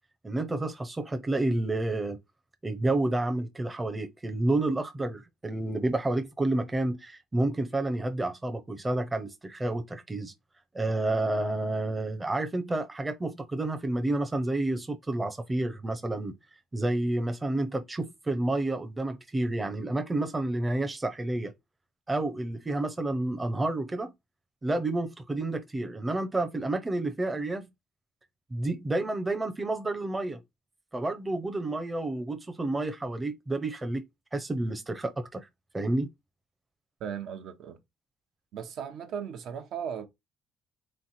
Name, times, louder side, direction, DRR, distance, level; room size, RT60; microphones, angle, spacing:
voice 1, 0.2-2.2 2.6-10.3 10.7-16.3 16.7-21.5 22.1-24.1 24.6-27.7 28.5-30.4 30.9-34.0 34.3-35.5 35.7-36.1, right 2 dB, 15° right, 0.8 m, -30 dB
voice 2, 37.0-37.8 38.5-40.1, right 8 dB, 70° right, 1.0 m, -37 dB
3.5 x 3.2 x 4.2 m
cardioid pair, 100°, 0 cm